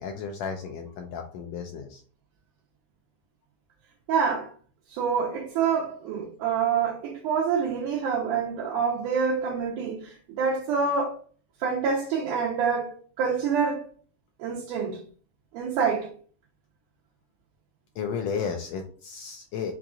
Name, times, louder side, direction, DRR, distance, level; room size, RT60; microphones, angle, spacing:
voice 1, 0.0-2.0 17.9-19.7, left 6 dB, 80° left, 1.5 m, -33 dB
voice 2, 4.1-4.5 4.9-11.2 11.6-13.9 14.4-15.0 15.5-16.1, right 6 dB, 85° right, 2.4 m, -26 dB
5.7 x 2.4 x 3.8 m
omnidirectional pair, 3.6 m